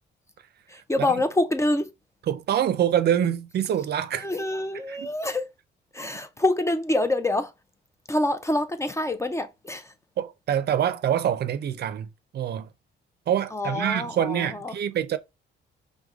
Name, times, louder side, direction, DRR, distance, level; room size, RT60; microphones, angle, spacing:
voice 1, 0.7-1.9 4.2-5.5 5.9-7.5 8.1-9.9 13.5-14.8, left 1 dB, 15° left, 0.4 m, -26 dB
voice 2, 2.3-4.3 4.9-5.1 10.2-12.1 12.3-12.7 13.3-15.2, right 10 dB, 55° right, 0.5 m, -25 dB
4.7 x 2.2 x 3.5 m
cardioid pair, 90°, 20 cm